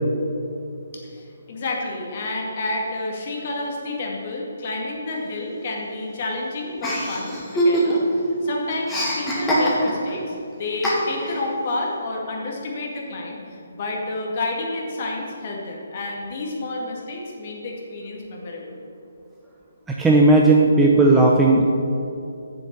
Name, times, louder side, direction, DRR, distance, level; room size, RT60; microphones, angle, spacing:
voice 1, 1.0-18.8, left 2 dB, 45° left, -1 dB, 2.1 m, -30 dB
Chuckle chortle, 6.8-8.2 8.4-10.1 10.8-11.4, right 1 dB, 10° left, 2.2 m, -23 dB
voice 2, 19.9-21.6, right 2 dB, 10° right, -2 dB, 0.7 m, -15 dB
7.9 x 6.9 x 6.8 m, 2.7 s
figure-of-eight pair, 140°, 0 cm